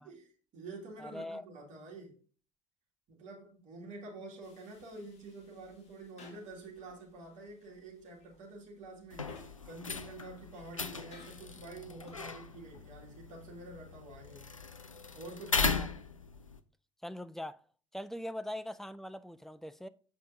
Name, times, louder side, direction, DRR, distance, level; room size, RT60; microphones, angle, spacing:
voice 1, 0.0-2.2 3.1-9.3 9.6-14.5 15.1-15.8, right 2 dB, 45° right, 2.4 m, -48 dB
voice 2, 1.0-1.4 15.6-15.9 17.0-17.6 17.9-19.9, left 1 dB, ahead, 0.4 m, -41 dB
sound 1, 4.4-13.6, left 3 dB, 40° left, 1.9 m, -60 dB
sound 2, 9.1-16.6, left 4 dB, 90° left, 0.4 m, -38 dB
7.3 x 5.0 x 2.7 m
figure-of-eight pair, 60°, 16 cm